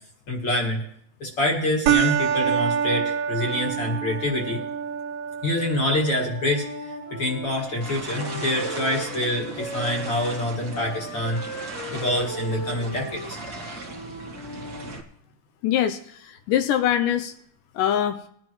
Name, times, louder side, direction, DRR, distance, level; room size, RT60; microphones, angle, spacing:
voice 1, 0.3-0.8 1.2-4.6 5.4-11.7 11.9-13.4, left 1 dB, 40° left, 0 dB, 2.0 m, -26 dB
sound 1, 1.9-10.8, right 8 dB, 75° right, 2.5 m, -29 dB
Wind instrument woodwind instrument, 6.5-10.4 10.7-15.0, equal, 60° left, 3.8 m, -37 dB
sound 2, 7.8-15.0, right 3 dB, 55° right, 1.0 m, -38 dB
voice 2, 15.6-17.3 17.8-18.2, left 10 dB, 80° left, 10 dB, 2.0 m, -23 dB
21.0 x 10.5 x 3.1 m, 0.66 s
omnidirectional pair, 4.3 m